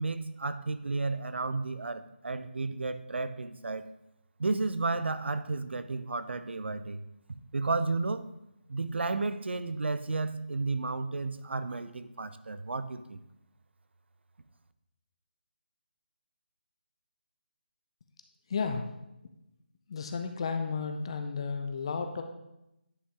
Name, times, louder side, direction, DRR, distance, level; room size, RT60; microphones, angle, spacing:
voice 1, 0.0-3.8 4.4-7.0 7.5-8.2 8.7-13.2, right 3 dB, 80° right, 12 dB, 0.6 m, -32 dB
voice 2, 18.5-18.9 19.9-22.2, left 5 dB, 30° left, 6 dB, 0.5 m, -33 dB
9.9 x 5.5 x 3.8 m, 0.89 s
figure-of-eight pair, 170°, 6 cm